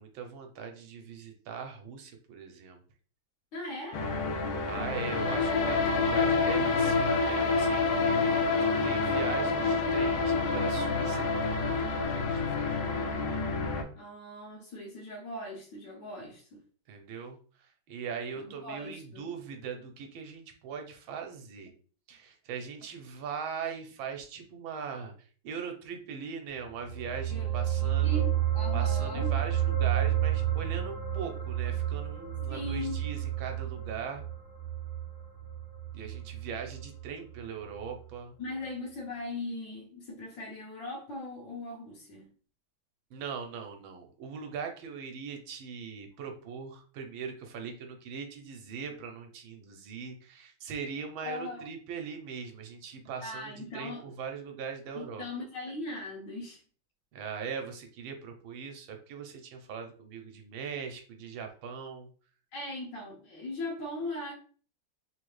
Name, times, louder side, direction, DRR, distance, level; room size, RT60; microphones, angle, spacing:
voice 1, 0.0-2.8 4.7-8.2 8.6-12.9 16.9-21.7 22.1-25.1 25.4-28.3 28.7-34.2 35.9-38.3 43.1-55.2 57.1-62.1, right 6 dB, 75° right, 4 dB, 1.5 m, -40 dB
voice 2, 3.5-4.1 13.9-16.6 18.3-19.3 27.3-29.3 32.5-33.0 38.4-42.3 51.2-51.7 53.2-54.1 54.9-56.6 62.5-64.3, left 1 dB, 65° left, -5 dB, 1.6 m, -39 dB
sound 1, 3.9-13.8, left 4 dB, 85° left, 1.5 m, -28 dB
sound 2, 26.7-37.4 37.7-37.9, right 11 dB, 45° right, 0.8 m, -31 dB
3.8 x 2.7 x 3.1 m, 0.42 s
omnidirectional pair, 2.2 m